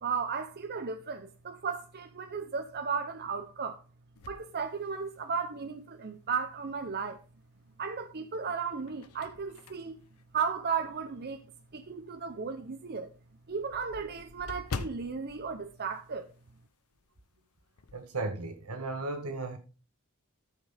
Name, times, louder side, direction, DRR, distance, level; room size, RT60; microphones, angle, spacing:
voice 1, 0.0-3.8 4.3-7.2 7.8-10.0 10.3-11.4 11.7-13.1 13.5-16.3, right 5 dB, 45° right, 0.7 m, -35 dB
sound 1, 4.2-5.5 6.0-6.1 7.6-8.1 8.6-11.2 11.7-11.8 12.2-12.3 12.6-12.7 12.9-16.7 16.9-17.2 17.5-18.1, left 4 dB, 85° left, 0.7 m, -44 dB
voice 2, 17.9-19.6, right 2 dB, 85° right, 1.7 m, -35 dB
13.5 x 6.5 x 3.4 m
head